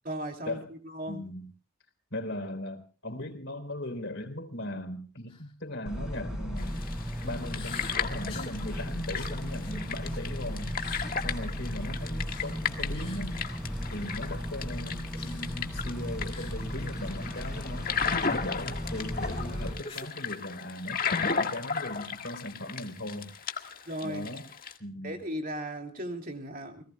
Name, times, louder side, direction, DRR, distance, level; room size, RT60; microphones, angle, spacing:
voice 1, 0.0-1.3 23.9-24.3 25.0-26.8, equal, 40° right, 3 dB, 2.8 m, -36 dB
voice 2, 1.1-1.5 2.1-6.8 7.2-10.8 11.2-13.4 13.9-18.0 18.4-23.3 24.0-24.5 24.8-25.2, left 1 dB, 60° left, 8 dB, 3.8 m, -38 dB
sound 1, 5.3-5.5 5.9-6.1 7.5-8.6 9.1-10.3 10.7-11.1 12.2-12.6 12.9-13.2 15.1-15.6 16.3-16.6 16.9-17.0 17.5-17.6 19.1-20.1, left 3 dB, 25° left, 2.6 m, -47 dB
sound 2, 5.9-19.7, equal, 5° right, 5.1 m, -36 dB
sound 3, 6.6-24.8, left 6 dB, 40° left, 1.7 m, -35 dB
30.0 x 19.0 x 2.3 m, 0.36 s
head